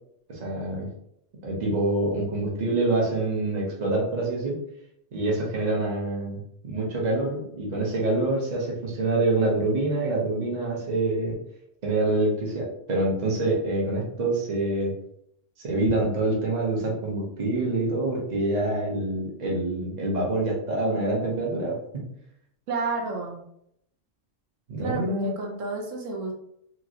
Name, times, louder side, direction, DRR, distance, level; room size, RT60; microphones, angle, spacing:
voice 1, 0.3-0.9 1.4-4.6 5.1-6.4 6.6-11.4 11.8-14.9 15.6-22.1 24.7-25.3, right 2 dB, 40° right, -3 dB, 0.8 m, -26 dB
voice 2, 22.7-23.4 24.8-26.3, right 3 dB, 80° right, 0 dB, 1.0 m, -31 dB
3.0 x 2.6 x 2.5 m, 0.73 s
omnidirectional pair, 1.3 m